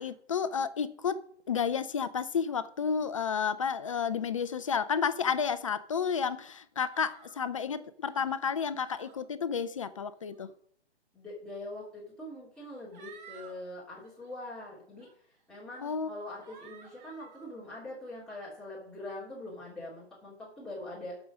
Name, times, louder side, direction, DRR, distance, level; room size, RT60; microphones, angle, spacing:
voice 1, 0.0-10.5 15.8-16.1, left 6 dB, 30° left, 0.4 m, -31 dB
sound 1, 6.8-7.4 8.0-8.4 8.8-9.2 10.1-10.5 11.5-11.6 12.5-13.6 14.0-14.3 15.0-15.1 15.7-16.0 16.4-17.5, right 6 dB, 40° right, 4.6 m, -54 dB
voice 2, 11.1-15.1 15.5-21.2, left 1 dB, ahead, 3.0 m, -43 dB
13.5 x 6.2 x 6.1 m
figure-of-eight pair, 140°, 34 cm